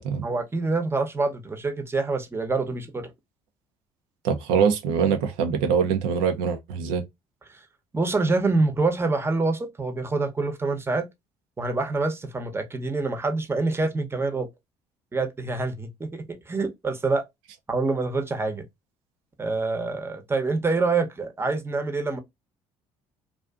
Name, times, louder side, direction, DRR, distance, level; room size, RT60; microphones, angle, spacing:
voice 1, 0.2-3.1 7.9-11.1 11.6-14.5 15.1-17.2 17.7-18.6 19.4-22.2, right 3 dB, 15° right, 0.7 m, -26 dB
voice 2, 4.2-7.0, right 6 dB, 85° right, 0.5 m, -23 dB
2.5 x 2.4 x 2.3 m
supercardioid pair, 70°, 14 cm